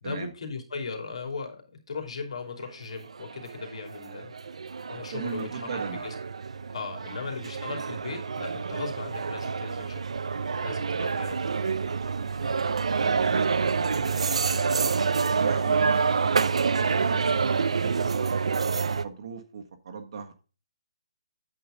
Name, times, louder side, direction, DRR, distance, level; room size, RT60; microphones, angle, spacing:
voice 1, 0.0-4.3 4.9-6.1 6.7-10.0 10.6-11.4, left 4 dB, 75° left, 4 dB, 2.8 m, -37 dB
sound 1, 2.6-2.7 3.0-19.1, right 5 dB, 85° right, 0.5 m, -27 dB
voice 2, 5.1-6.0 7.0-7.2 11.9-12.5 12.8-14.9 15.2-20.3, right 6 dB, 55° right, 5 dB, 1.5 m, -39 dB
8.6 x 7.0 x 3.8 m, 0.35 s
hypercardioid pair, 160°, 3 cm